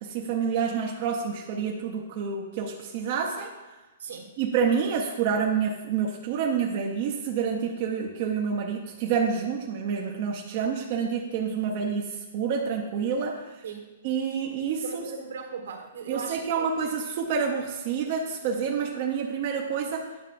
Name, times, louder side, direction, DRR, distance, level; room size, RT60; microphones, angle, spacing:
voice 1, 0.0-3.5 4.4-13.6 14.0-15.0 16.1-20.1, right 6 dB, 30° right, 0 dB, 0.5 m, -28 dB
voice 2, 4.0-4.3 13.6-13.8 14.8-16.7, right 6 dB, 70° right, 4 dB, 1.2 m, -38 dB
9.3 x 5.6 x 2.5 m, 1.1 s
hypercardioid pair, 180°, 0 cm